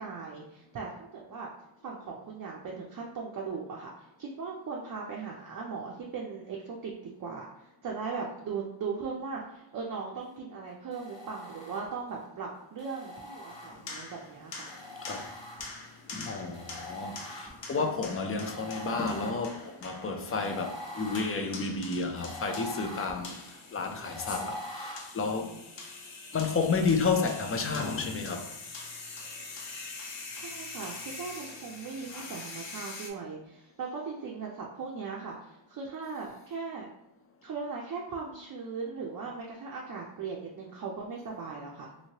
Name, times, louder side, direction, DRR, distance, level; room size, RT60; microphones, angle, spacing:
voice 1, 0.0-1.5 1.8-6.9 7.2-14.7 23.9-24.5 30.3-36.9 37.4-41.9, right 5 dB, 45° right, 0.5 m, -38 dB
sound 1, 10.9-12.2 12.8-14.1 14.7-16.0 16.5-17.9 18.4-25.0, left 1 dB, 10° left, 0.9 m, -44 dB
sound 2, 13.5-33.1, left 3 dB, 70° left, 0.7 m, -44 dB
voice 2, 16.1-23.4 23.7-25.6 26.3-28.5 32.3-32.4, left 4 dB, 30° left, 0.4 m, -31 dB
3.0 x 2.7 x 2.8 m
wide cardioid pair, 120°, 47 cm